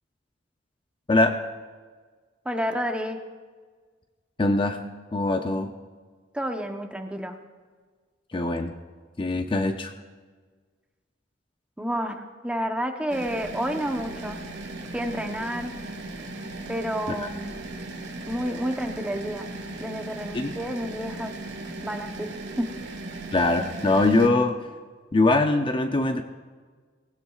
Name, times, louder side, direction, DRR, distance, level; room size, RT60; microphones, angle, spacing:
voice 1, 2.4-3.2 6.3-7.4 11.8-14.4 14.9-15.8 16.7-17.5 18.3-19.5 19.8-21.4 21.8-22.3 22.6-22.7, equal, 5° right, 4 dB, 0.9 m, -30 dB
voice 2, 4.4-4.8 5.1-5.7 8.3-8.7 9.2-9.9 17.2-17.3 20.3-20.5 23.3-24.6 25.1-26.2, left 2 dB, 25° left, 6 dB, 0.6 m, -22 dB
sound 1, 13.1-24.3, right 2 dB, 65° right, 1.7 m, -37 dB
18.5 x 17.0 x 2.4 m, 1.5 s
head